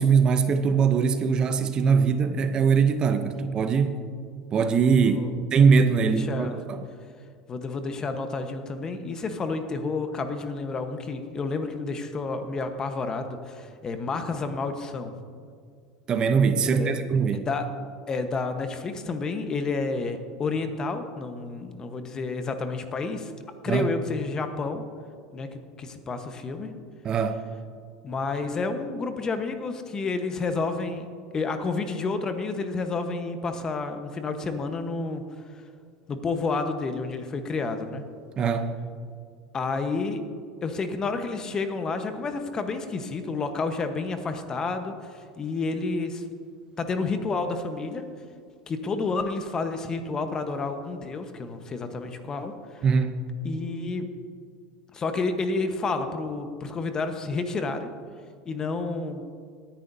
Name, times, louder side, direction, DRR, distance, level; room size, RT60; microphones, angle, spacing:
voice 1, 0.0-4.0 4.5-5.2 5.5-6.8 16.1-17.5 23.7-23.9 27.0-27.4 38.4-38.7 52.8-53.2, right 6 dB, 35° right, 9 dB, 0.8 m, -22 dB
voice 2, 5.9-6.6 7.5-15.1 16.6-17.0 17.4-17.7 18.1-23.3 23.6-24.8 25.3-25.5 25.8-26.7 28.0-31.1 31.3-35.2 36.1-38.0 39.5-40.2 40.6-46.2 46.8-48.0 48.7-52.9 53.4-54.1 54.9-57.9 58.4-59.2, left 3 dB, 30° left, 7 dB, 1.1 m, -30 dB
18.5 x 10.5 x 2.7 m, 2.1 s
supercardioid pair, 100°, 2 cm